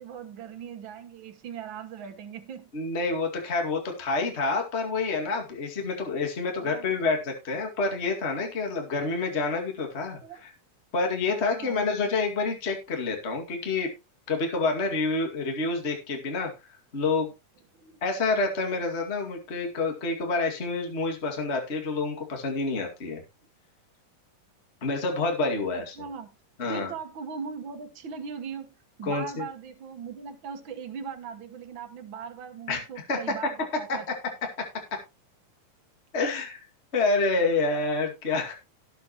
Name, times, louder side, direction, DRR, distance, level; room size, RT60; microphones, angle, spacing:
voice 1, 0.0-2.7 5.2-5.3 6.4-6.9 10.2-10.4 11.3-11.9 17.7-18.0 25.7-26.3 26.6-28.7 29.0-34.1 36.2-36.3, right 7 dB, 55° right, 1.3 m, -39 dB
voice 2, 2.7-10.5 10.9-13.9 14.3-16.5 16.9-17.3 18.0-23.2 24.8-25.9 26.6-26.9 29.0-29.4 32.7-32.8 33.1-33.3 33.9-34.0 34.9-35.0 36.1-36.6 36.9-38.5, left 3 dB, 25° left, 1.9 m, -28 dB
17.5 x 6.9 x 3.0 m
omnidirectional pair, 3.9 m